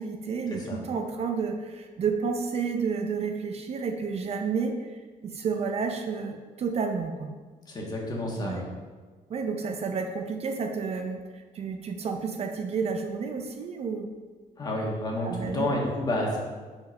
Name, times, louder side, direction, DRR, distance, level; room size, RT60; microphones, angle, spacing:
voice 1, 0.0-7.3 8.4-8.6 9.3-14.1 15.2-15.7, right 5 dB, 45° right, 5 dB, 0.6 m, -31 dB
voice 2, 7.7-8.7 14.6-16.4, left 1 dB, 25° left, -2 dB, 1.4 m, -30 dB
5.2 x 5.1 x 5.3 m, 1.4 s
cardioid pair, 150°, 15 cm